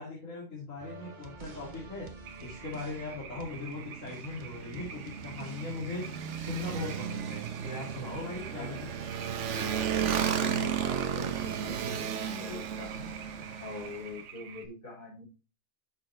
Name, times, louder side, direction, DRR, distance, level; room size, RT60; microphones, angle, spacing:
voice 1, 0.0-2.1 2.4-6.1 6.4-8.9, left 3 dB, 50° left, -4 dB, 2.7 m, -39 dB
sound 1, 0.8-5.9, right 3 dB, 35° right, 1.0 m, -48 dB
sound 2, 2.2-14.7, right 7 dB, 80° right, 1.5 m, -48 dB
Motorcycle, 3.4-14.1, right 8 dB, 55° right, 0.9 m, -34 dB
voice 2, 10.2-13.1 13.6-15.2, left 2 dB, 70° left, -3 dB, 4.4 m, -43 dB
6.7 x 5.7 x 4.2 m, 0.33 s
omnidirectional pair, 1.7 m